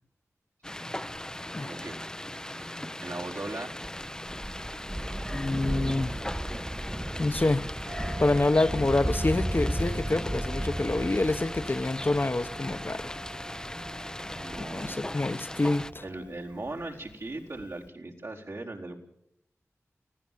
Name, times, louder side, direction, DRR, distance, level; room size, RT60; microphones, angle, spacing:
sound 1, 0.6-15.9, left 1 dB, 10° left, 0.7 m, -39 dB
voice 1, 1.6-2.0 2.5-2.7 3.0-3.7 14.4-15.2 16.0-19.0, right 2 dB, 70° right, -3 dB, 4.4 m, -38 dB
Thunder, 3.8-16.7 17.6-17.7, right 1 dB, 25° right, 1.9 m, -35 dB
voice 2, 5.3-6.1 7.2-7.7 8.2-13.1 14.7-16.0, left 2 dB, 40° left, 11 dB, 1.1 m, -27 dB
sound 2, 7.9-16.9, right 1 dB, 85° right, 2.2 m, -46 dB
24.5 x 16.5 x 7.5 m, 0.76 s
cardioid pair, 45°, 5 cm